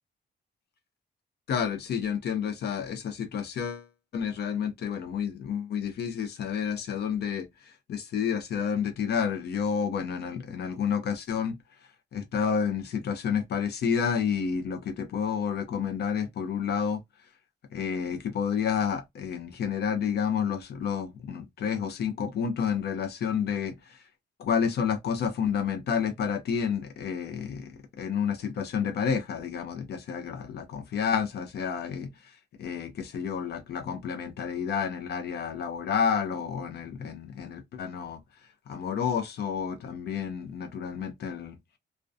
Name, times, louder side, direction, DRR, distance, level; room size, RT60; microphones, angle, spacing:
voice 1, 1.5-3.9 4.1-11.6 12.1-17.0 17.7-24.0 24.4-38.2 38.7-41.6, left 7 dB, 60° left, 0.4 m, -30 dB
2.3 x 2.1 x 2.5 m
wide cardioid pair, 180°, 19 cm